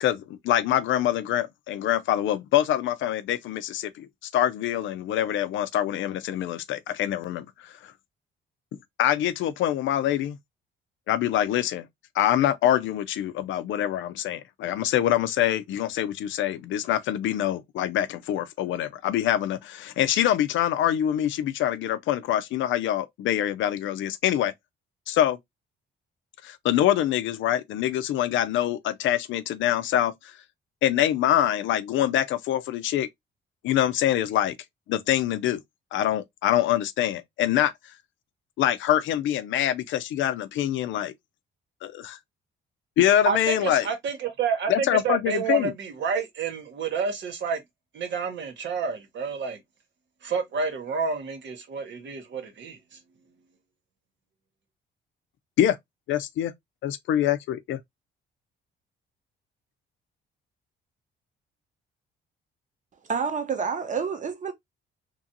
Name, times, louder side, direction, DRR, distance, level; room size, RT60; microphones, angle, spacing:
voice 1, 0.0-4.1 4.3-7.9 9.0-10.4 11.1-11.9 12.2-24.5 25.1-25.4 26.4-30.3 30.8-33.1 33.6-34.5 34.9-35.6 35.9-37.7 38.6-41.1 41.8-42.2 43.0-43.9 44.7-45.7 55.6-55.8 56.1-56.5 56.8-57.8, left 11 dB, 75° left, 0.4 m, -25 dB
voice 2, 43.3-47.6 47.9-49.6 50.2-52.8, right 5 dB, 65° right, 1.0 m, -29 dB
voice 3, 63.1-64.5, right 6 dB, 40° right, 0.9 m, -28 dB
3.0 x 2.5 x 2.6 m
cardioid pair, 90°, 20 cm